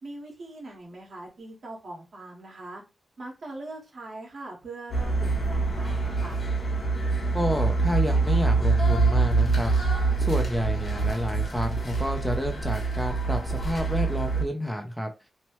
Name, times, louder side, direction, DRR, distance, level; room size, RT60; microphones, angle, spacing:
voice 1, 0.0-2.8 3.2-6.4, right 2 dB, 70° right, -1 dB, 1.3 m, -41 dB
sound 1, 4.9-14.4, right 3 dB, 65° left, 1.0 m, -25 dB
voice 2, 7.3-9.8 10.2-15.1, equal, 5° left, 3 dB, 0.5 m, -29 dB
3.0 x 2.1 x 3.0 m, 0.27 s
wide cardioid pair, 90°, 0 cm